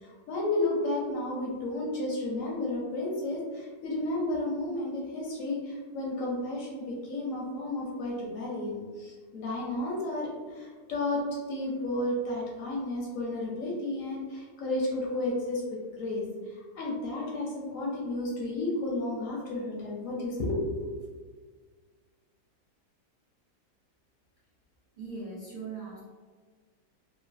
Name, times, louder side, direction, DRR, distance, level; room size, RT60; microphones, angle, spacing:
voice 1, 0.0-11.2 11.5-20.7, left 2 dB, 70° left, -4 dB, 0.8 m, -32 dB
voice 2, 25.0-26.0, right 4 dB, 75° right, -8 dB, 0.4 m, -39 dB
3.0 x 2.3 x 2.4 m, 1.5 s
omnidirectional pair, 1.7 m